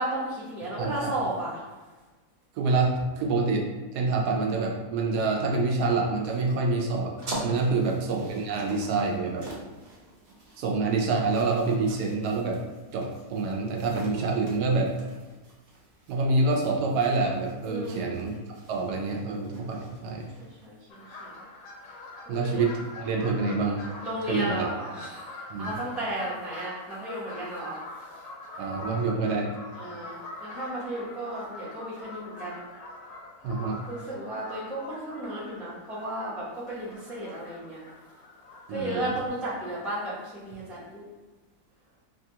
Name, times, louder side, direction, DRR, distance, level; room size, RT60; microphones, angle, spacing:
voice 1, 0.0-1.6 17.7-18.1 20.4-20.8 21.2-21.3 22.3-22.7 24.0-25.3 25.6-27.8 29.8-32.6 33.9-37.8 38.7-40.1 40.4-41.0, right 1 dB, ahead, -9 dB, 0.4 m, -34 dB
voice 2, 0.8-1.1 2.6-3.6 3.9-9.5 10.6-12.6 12.9-15.0 16.1-18.4 18.7-20.3 22.3-23.8 24.3-24.7 25.5-25.8 28.6-29.5 33.4-33.8 38.7-39.1, right 3 dB, 85° right, 0 dB, 1.2 m, -27 dB
sound 1, 7.2-20.7, right 2 dB, 65° right, 0.4 m, -45 dB
sound 2, 20.9-39.3, left 2 dB, 65° left, 0.9 m, -44 dB
3.3 x 2.3 x 2.7 m, 1.2 s
omnidirectional pair, 1.7 m